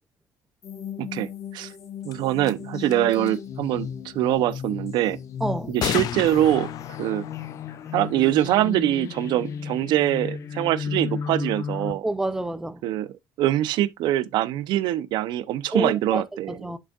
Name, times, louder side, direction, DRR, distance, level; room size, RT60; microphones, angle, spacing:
sound 1, 0.6-11.9, left 7 dB, 40° left, 1.1 m, -34 dB
voice 1, 1.0-1.7 2.0-3.9 4.1-5.2 5.7-6.7 7.0-7.2 7.9-12.0 12.8-13.1 13.4-16.6, right 13 dB, 75° right, 0.7 m, -23 dB
sound 2, 2.1-2.2 2.4-2.5 2.8-3.4 5.8-9.2, left 12 dB, 60° left, 0.5 m, -34 dB
voice 2, 5.4-5.8 12.0-12.8 15.7-16.8, right 1 dB, 5° right, 0.5 m, -28 dB
8.0 x 6.2 x 2.4 m
cardioid pair, 140°, 8 cm